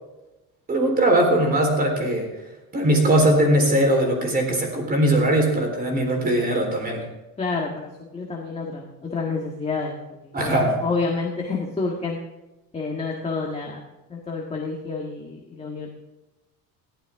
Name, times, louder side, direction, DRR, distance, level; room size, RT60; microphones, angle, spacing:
voice 1, 0.7-2.3 2.7-7.0 10.3-10.7, right 1 dB, 25° right, 3 dB, 3.9 m, -20 dB
voice 2, 7.4-9.9 10.2-12.2 12.7-13.8 14.1-15.9, left 4 dB, 15° left, -1 dB, 1.6 m, -29 dB
21.5 x 15.0 x 3.6 m, 1.0 s
cardioid pair, 170°, 36 cm